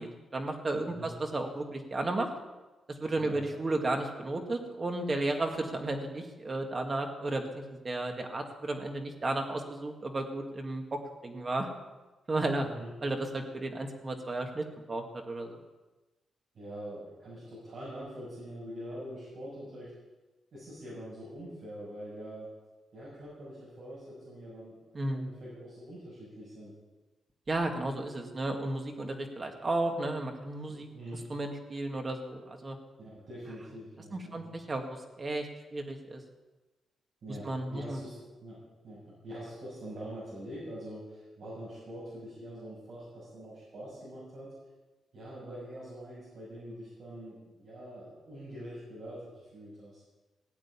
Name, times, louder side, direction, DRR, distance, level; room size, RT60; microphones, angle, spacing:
voice 1, 0.0-2.3 2.9-11.7 12.3-12.7 13.0-15.6 24.9-25.3 27.5-30.9 31.3-32.8 34.1-36.2 37.4-38.0, right 2 dB, 25° right, 3 dB, 1.9 m, -33 dB
voice 2, 12.6-12.9 16.5-19.9 20.5-22.5 22.9-26.7 30.7-31.3 33.0-34.6 37.2-38.1 38.4-44.5 45.1-50.0, right 1 dB, 50° right, -7 dB, 6.6 m, -44 dB
17.0 x 8.1 x 9.7 m, 1.2 s
wide cardioid pair, 165°, 0 cm